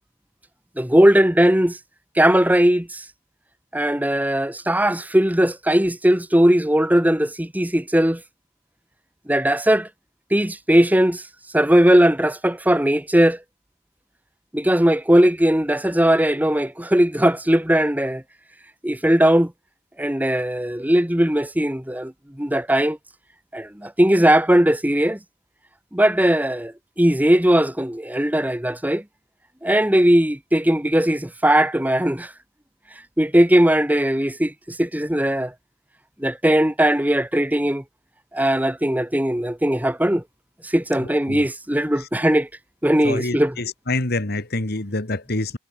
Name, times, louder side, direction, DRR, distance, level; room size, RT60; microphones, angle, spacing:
voice 1, 0.8-1.8 2.1-3.0 3.7-8.2 9.3-9.9 10.3-11.2 11.5-13.4 14.5-18.2 18.8-19.5 20.0-22.1 22.4-23.0 23.5-25.2 25.9-29.0 29.6-32.3 33.2-35.5 36.2-37.8 38.3-40.2 40.6-42.5 42.8-43.6, right 1 dB, 10° right, 1.6 m, -19 dB
voice 2, 43.0-45.6, left 2 dB, 55° left, 2.3 m, -26 dB
head